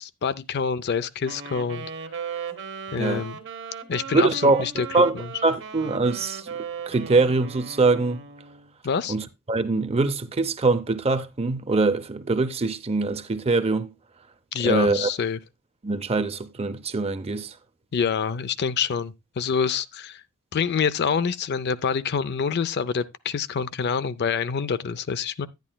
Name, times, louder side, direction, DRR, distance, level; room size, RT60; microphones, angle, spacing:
voice 1, 0.0-1.9 2.9-3.4 3.9-4.9 5.1-5.3 8.8-9.1 14.5-15.4 17.9-20.2 20.5-25.5, left 6 dB, 50° left, 0.4 m, -26 dB
Wind instrument woodwind instrument, 1.2-8.7, right 6 dB, 55° right, 1.0 m, -37 dB
voice 2, 4.1-5.1 5.4-8.2 9.1-13.9 14.6-15.1 15.8-17.5, right 3 dB, 30° right, 0.6 m, -23 dB
10.5 x 10.0 x 2.2 m
head